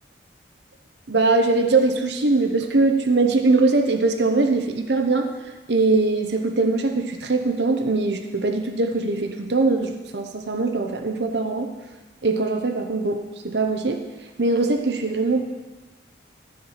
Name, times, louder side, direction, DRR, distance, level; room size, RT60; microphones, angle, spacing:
voice 1, 1.1-5.3 5.7-11.7 12.2-14.0 14.4-15.4, right 3 dB, 70° right, 5 dB, 0.9 m, -21 dB
14.0 x 4.8 x 7.3 m, 1.2 s
head